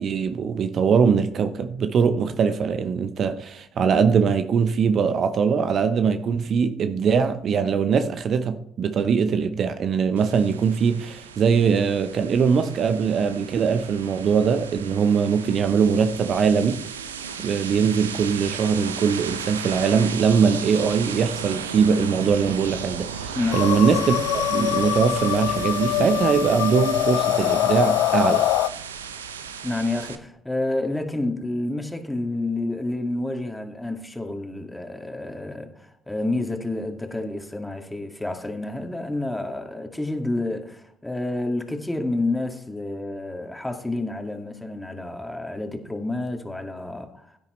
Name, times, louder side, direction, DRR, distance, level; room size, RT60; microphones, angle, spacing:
voice 1, 0.0-16.8 17.4-28.4, right 6 dB, 55° right, 0.8 m, -21 dB
sound 1, 10.2-30.2, right 7 dB, 90° right, 0.7 m, -35 dB
sound 2, 23.5-28.7, left 14 dB, 70° left, 0.3 m, -23 dB
voice 2, 29.6-47.4, left 2 dB, 10° left, 2.1 m, -29 dB
16.5 x 9.6 x 3.2 m
hypercardioid pair, 50°, 0 cm